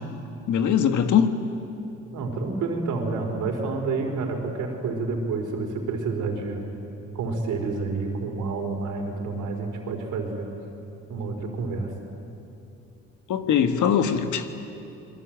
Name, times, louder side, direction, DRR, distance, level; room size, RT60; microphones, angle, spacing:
voice 1, 0.5-1.3 13.3-14.5, left 8 dB, 75° left, 8 dB, 1.7 m, -21 dB
voice 2, 2.1-6.6 7.1-10.5 11.1-11.9, right 3 dB, 80° right, 3 dB, 4.6 m, -29 dB
27.0 x 21.5 x 9.2 m, 2.8 s
cardioid pair, 90°, 30 cm